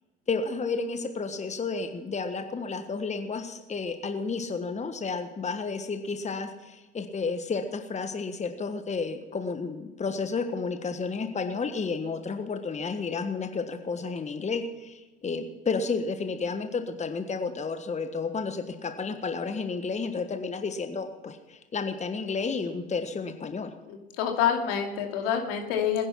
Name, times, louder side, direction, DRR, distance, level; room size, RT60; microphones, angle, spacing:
voice 1, 0.3-23.7, left 4 dB, 20° left, 7 dB, 1.4 m, -31 dB
voice 2, 23.9-26.1, left 8 dB, 65° left, 3 dB, 2.8 m, -27 dB
20.0 x 10.5 x 5.8 m, 1.2 s
figure-of-eight pair, 65°, 30 cm